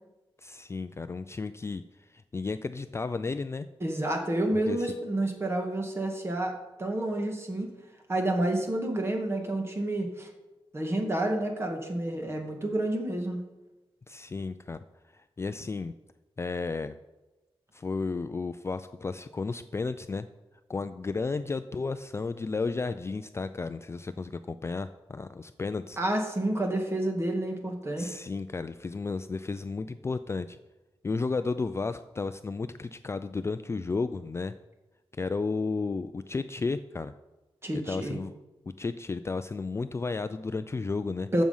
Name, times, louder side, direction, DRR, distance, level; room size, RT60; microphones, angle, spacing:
voice 1, 0.4-1.8 2.1-3.7 4.7-4.9 14.1-14.8 15.1-15.9 16.4-17.0 17.7-20.3 20.7-26.0 28.0-30.6 31.0-34.5 35.1-37.1 37.9-38.3 38.7-41.3, left 4 dB, 25° left, 11 dB, 0.3 m, -33 dB
voice 2, 3.8-6.5 6.8-7.7 8.1-10.3 10.7-13.4 26.0-28.1 37.6-38.2 41.3-41.4, right 1 dB, 25° right, 2 dB, 1.9 m, -29 dB
14.5 x 6.3 x 5.5 m, 1.1 s
wide cardioid pair, 170°, 10 cm